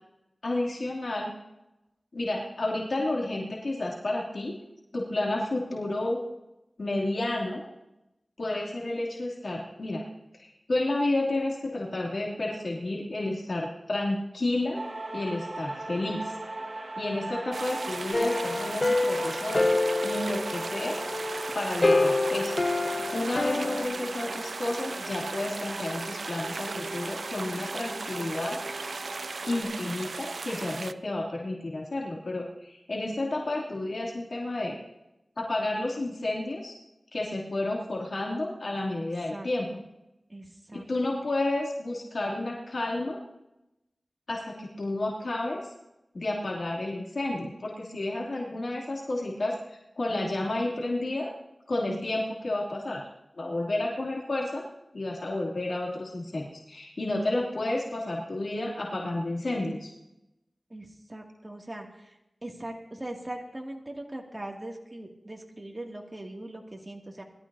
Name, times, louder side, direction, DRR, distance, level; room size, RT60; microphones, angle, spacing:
voice 1, 0.4-1.3 2.1-4.6 4.9-6.2 6.8-7.6 8.4-10.0 10.4-14.8 15.1-16.4 16.8-19.7 20.0-21.0 21.5-22.5 23.1-28.6 29.5-34.8 35.4-36.7 37.1-39.8 40.7-43.2 44.3-45.7 46.1-51.3 51.7-53.1 53.4-54.6 54.9-59.9, left 2 dB, 75° left, -3 dB, 2.9 m, -31 dB
sound 1, 14.7-29.6, right 2 dB, 45° right, 4.7 m, -40 dB
sound 2, 17.5-30.9, right 4 dB, 80° right, 0.4 m, -37 dB
sound 3, 18.1-23.8, left 2 dB, 40° left, 1.0 m, -27 dB
voice 2, 40.3-40.9 60.7-62.2 62.4-67.2, right 1 dB, 30° right, 1 dB, 2.4 m, -40 dB
21.5 x 13.0 x 2.8 m, 0.91 s
wide cardioid pair, 50°, 0 cm